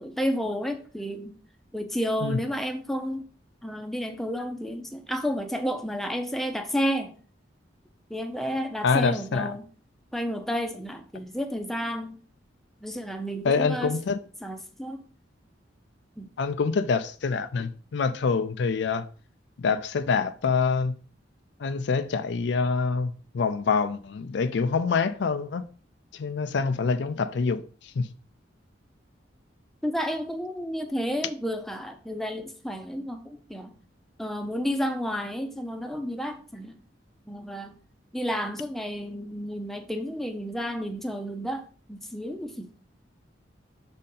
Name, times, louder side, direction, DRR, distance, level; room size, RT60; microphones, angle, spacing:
voice 1, 0.0-1.3 1.7-3.3 3.6-7.1 8.1-9.6 10.1-12.2 12.8-13.9 14.4-15.0 16.2-16.3 29.8-33.7 34.2-36.7 37.3-37.8 38.1-41.6 41.9-42.7, equal, ahead, 0.6 m, -31 dB
voice 2, 8.8-9.6 13.4-14.2 16.4-19.0 19.6-21.0 21.6-25.6 26.1-28.1, left 5 dB, 65° left, 0.4 m, -26 dB
6.3 x 4.2 x 3.7 m
head